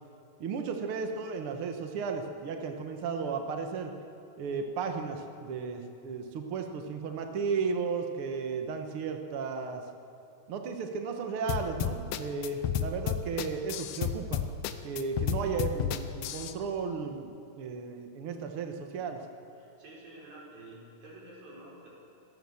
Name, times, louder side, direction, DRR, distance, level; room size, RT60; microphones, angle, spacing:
voice 1, 0.4-3.9 4.4-9.9 10.5-14.4 14.8-19.2, right 5 dB, 80° right, 4 dB, 1.2 m, -34 dB
sound 1, 11.5-16.5, left 10 dB, 85° left, 2.8 m, -31 dB
voice 2, 19.6-21.9, right 2 dB, 65° right, -4 dB, 7.0 m, -49 dB
26.0 x 17.0 x 7.2 m, 2.7 s
omnidirectional pair, 4.5 m